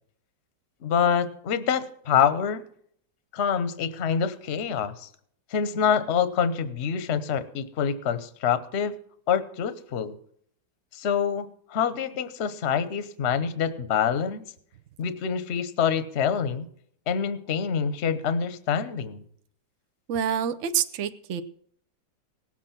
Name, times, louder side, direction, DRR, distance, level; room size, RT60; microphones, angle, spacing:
voice 1, 0.8-2.6 3.3-5.1 5.5-8.9 9.3-10.2 10.9-14.4 15.0-16.7 17.1-19.2, left 7 dB, 45° left, 12 dB, 1.0 m, -26 dB
voice 2, 20.1-21.4, right 9 dB, 65° right, 10 dB, 0.7 m, -27 dB
18.0 x 7.5 x 5.8 m, 0.63 s
omnidirectional pair, 2.0 m